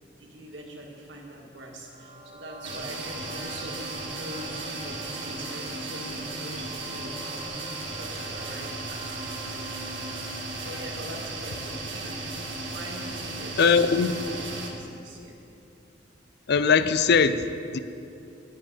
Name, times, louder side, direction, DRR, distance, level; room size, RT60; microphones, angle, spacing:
voice 1, 0.2-7.6 7.9-9.8 10.6-12.2 12.6-15.4, right 1 dB, 70° right, 0 dB, 1.8 m, -43 dB
sound 1, 1.8-10.7, right 1 dB, 40° right, 1.7 m, -46 dB
sound 2, 2.6-14.7, right 2 dB, 90° right, 1.7 m, -35 dB
voice 2, 13.6-14.1 16.5-17.8, left 5 dB, 60° left, 12 dB, 0.5 m, -21 dB
9.9 x 7.3 x 7.4 m, 2.7 s
head